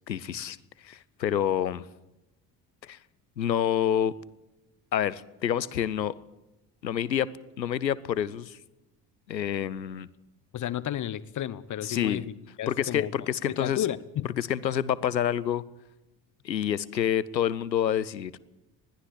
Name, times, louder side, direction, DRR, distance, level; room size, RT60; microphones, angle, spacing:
voice 1, 0.1-0.6 0.8-1.8 2.8-3.0 3.4-4.1 4.9-6.2 6.8-7.3 7.6-8.6 9.3-10.1 11.8-12.2 12.7-13.9 14.4-15.6 16.4-18.3, left 10 dB, 85° left, 21 dB, 0.7 m, -28 dB
voice 2, 10.5-13.1 13.5-14.3, left 11 dB, 35° left, 19 dB, 1.0 m, -32 dB
20.5 x 14.5 x 8.6 m, 0.96 s
figure-of-eight pair, 55°, 50 cm